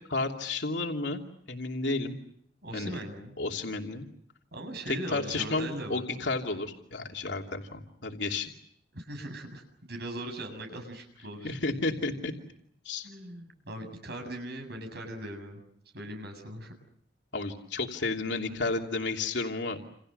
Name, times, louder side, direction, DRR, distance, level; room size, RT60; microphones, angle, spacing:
voice 1, 0.1-1.2 1.5-2.2 2.7-3.0 3.4-4.1 4.9-8.5 11.4-12.3 12.8-13.1 17.3-19.8, left 3 dB, 85° left, 2 dB, 2.9 m, -32 dB
voice 2, 2.6-3.3 4.5-6.0 8.9-11.5 13.0-15.6 15.9-16.7, right 1 dB, 65° right, 5 dB, 7.7 m, -39 dB
29.0 x 29.0 x 6.7 m, 0.69 s
head